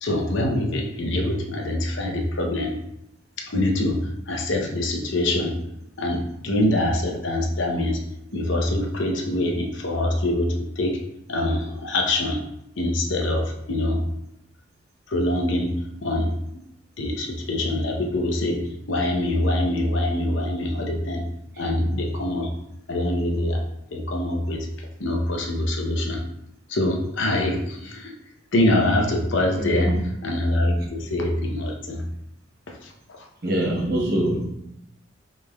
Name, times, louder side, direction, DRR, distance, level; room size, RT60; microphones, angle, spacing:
voice 1, 0.0-2.8 3.4-5.6 6.0-8.0 8.3-11.0 11.3-12.4 12.8-14.0 15.1-16.3 17.0-21.3 21.6-22.5 22.9-23.6 23.9-24.7 25.0-26.2 26.7-28.1 28.5-29.9 30.2-32.1 32.7-33.3, left 1 dB, 75° left, 2 dB, 0.7 m, -24 dB
voice 2, 29.6-30.0 33.4-34.5, right 1 dB, 50° right, -2 dB, 0.9 m, -24 dB
5.4 x 3.2 x 2.3 m, 0.83 s
head